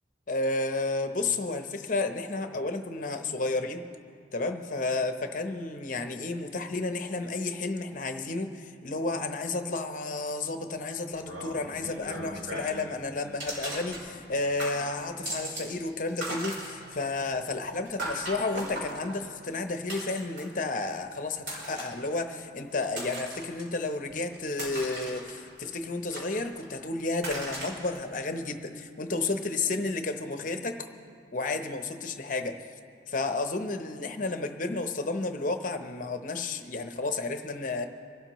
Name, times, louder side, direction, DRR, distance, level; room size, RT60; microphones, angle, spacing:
voice 1, 0.3-3.9 4.3-30.8 31.3-32.6 33.1-37.9, left 3 dB, 45° left, 6 dB, 0.8 m, -32 dB
sound 1, 11.1-12.9 13.4-14.3 14.6-15.8 16.0-20.6 21.4-22.0 22.6-23.6 24.1-25.6 26.1-26.8 27.2-28.0, right 1 dB, 85° right, 3.9 m, -38 dB
25.0 x 12.5 x 3.1 m, 2.2 s
head